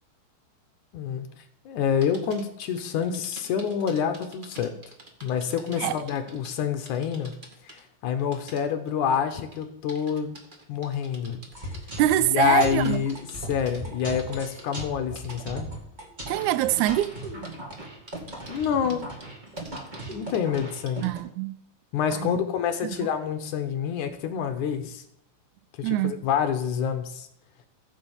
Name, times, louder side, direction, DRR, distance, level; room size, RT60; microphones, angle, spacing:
voice 1, 0.9-1.3 1.7-4.8 5.2-7.3 7.6-10.4 10.7-11.4 12.3-13.2 13.5-15.7 18.5-19.0 20.1-21.0 21.9-25.0 25.8-27.3, left 8 dB, 70° left, 2.3 m, -27 dB
sound 1, 2.0-6.6 6.9-7.8 8.2-9.0 9.5-14.8 15.2-15.4 16.3-17.1 17.4-17.8 18.1-21.2, right 2 dB, 40° right, 0.7 m, -47 dB
sound 2, 11.5-21.2, right 1 dB, 20° right, 1.5 m, -38 dB
voice 2, 12.0-13.0 16.3-17.2 21.0-21.6 22.1-22.3 23.0-23.1 25.8-26.1, right 14 dB, 80° right, 1.8 m, -24 dB
15.5 x 5.7 x 7.2 m
omnidirectional pair, 4.0 m